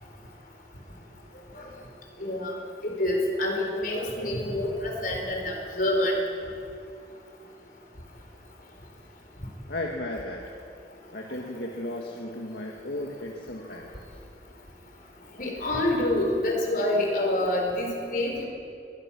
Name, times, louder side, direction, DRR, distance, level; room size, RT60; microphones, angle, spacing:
voice 1, 2.2-2.6 2.8-6.2 15.3-18.4, left 1 dB, 50° left, 0 dB, 4.5 m, -27 dB
voice 2, 9.7-10.4 11.1-14.2, left 1 dB, 65° left, 0 dB, 1.7 m, -35 dB
22.0 x 20.5 x 6.1 m, 2.5 s
head